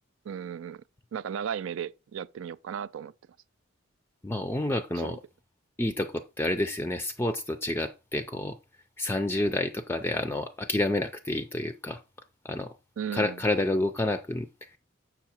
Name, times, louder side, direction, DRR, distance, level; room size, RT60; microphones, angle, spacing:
voice 1, 0.3-0.8 1.1-3.1 5.0-5.2 13.0-13.4, right 8 dB, 70° right, 0.4 m, -35 dB
voice 2, 4.2-5.2 5.8-8.6 9.0-12.0 12.4-12.7 13.1-14.5, left 1 dB, 10° left, 0.4 m, -29 dB
7.6 x 5.7 x 4.3 m
head